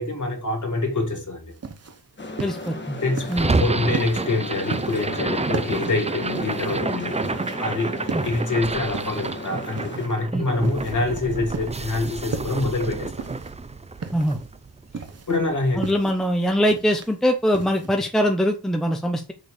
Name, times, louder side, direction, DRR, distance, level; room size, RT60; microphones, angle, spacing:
voice 1, 0.0-1.5 3.0-13.3 14.9-15.8, left 2 dB, 45° left, 3.0 m, -26 dB
sound 1, 1.5-17.9, right 5 dB, 35° right, 0.9 m, -36 dB
sound 2, 2.2-10.1, left 2 dB, 25° left, 1.5 m, -36 dB
voice 2, 2.4-3.0 3.3-3.5 8.1-8.2 10.3-10.4 14.1-14.4 15.8-19.3, equal, ahead, 0.8 m, -22 dB
sound 3, 3.3-15.5, right 3 dB, 15° right, 0.4 m, -29 dB
6.4 x 5.2 x 6.7 m
wide cardioid pair, 170°, 41 cm